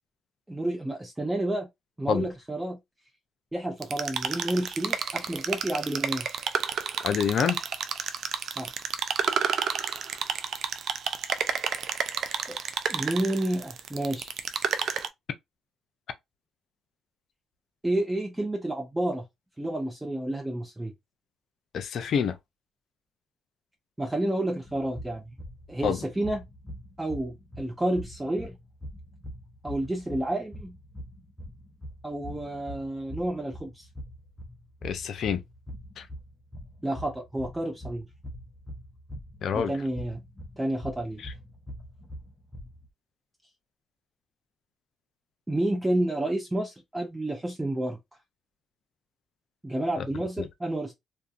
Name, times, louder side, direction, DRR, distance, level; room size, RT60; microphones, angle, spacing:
voice 1, 0.5-1.7 2.0-2.8 3.5-6.3 8.6-8.7 12.5-12.6 12.9-14.3 17.8-19.3 19.6-20.9 24.0-25.3 25.7-26.4 27.0-28.6 29.6-30.8 32.0-33.9 36.8-38.1 39.5-40.2 40.6-41.2 45.5-48.0 49.6-50.9, right 1 dB, 15° right, 0.7 m, -30 dB
sound 1, 3.8-15.1, right 7 dB, 65° right, 0.4 m, -30 dB
voice 2, 7.0-7.6 21.7-22.4 25.8-26.0 34.8-35.4 36.0-36.1 39.4-39.7 41.2-41.3 50.0-50.1, left 7 dB, 65° left, 0.5 m, -27 dB
sound 2, 24.6-42.9, equal, 25° left, 0.7 m, -43 dB
2.6 x 2.3 x 2.4 m
supercardioid pair, 65°, 0 cm